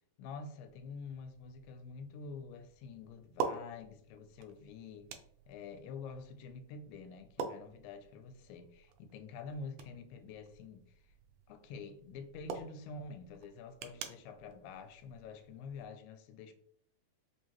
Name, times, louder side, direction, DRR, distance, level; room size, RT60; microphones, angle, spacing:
voice 1, 0.2-5.1 5.5-10.8 11.5-16.5, left 4 dB, 85° left, 2.3 m, -47 dB
sound 1, 0.7-15.9, right 6 dB, 80° right, 1.9 m, -47 dB
5.1 x 2.7 x 2.9 m
omnidirectional pair, 4.0 m